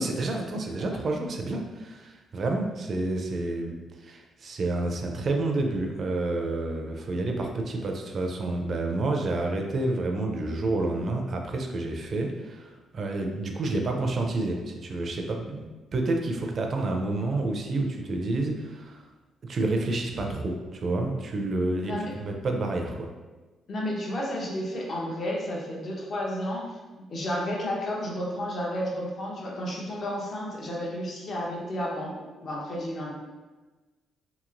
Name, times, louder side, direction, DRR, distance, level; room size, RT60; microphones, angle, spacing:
voice 1, 0.0-19.1 19.4-23.1, right 2 dB, 50° right, 2 dB, 0.4 m, -29 dB
voice 2, 23.7-26.7 27.1-32.1 32.4-33.1, equal, 50° left, -3 dB, 0.8 m, -31 dB
2.9 x 2.8 x 2.5 m, 1.2 s
cardioid pair, 90°, 0 cm